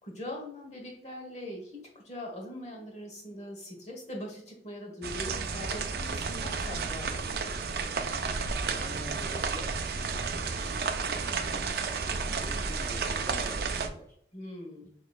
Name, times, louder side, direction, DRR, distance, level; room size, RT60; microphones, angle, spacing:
voice 1, 0.0-7.6 14.3-14.9, left 1 dB, 40° left, 0 dB, 1.2 m, -42 dB
sound 1, 5.0-13.9, right 4 dB, 60° right, 0.4 m, -32 dB
voice 2, 8.5-14.2 14.8-14.9, equal, 15° left, 0 dB, 0.4 m, -46 dB
6.2 x 3.0 x 2.3 m, 0.69 s
head